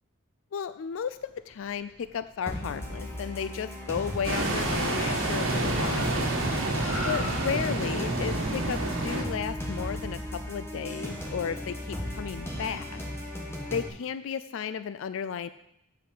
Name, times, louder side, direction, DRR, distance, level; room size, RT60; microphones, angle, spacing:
voice 1, 0.5-6.2 7.0-13.0 13.7-15.5, left 7 dB, 70° left, 13 dB, 0.4 m, -34 dB
Car, 1.0-10.5, equal, 10° right, 3.1 m, -45 dB
sound 1, 2.5-13.9, equal, 10° left, 1.1 m, -36 dB
sound 2, 4.2-9.2, right 2 dB, 70° right, 1.8 m, -28 dB
7.8 x 5.7 x 6.5 m, 0.79 s
head